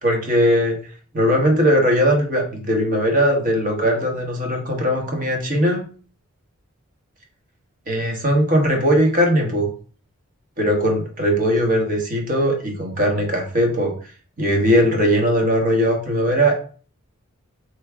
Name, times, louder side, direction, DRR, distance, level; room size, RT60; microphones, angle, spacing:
voice 1, 0.0-0.8 1.1-5.8 7.9-9.7 10.6-13.9 14.4-16.6, equal, 40° right, 1 dB, 1.4 m, -19 dB
4.6 x 3.2 x 3.5 m, 0.40 s
head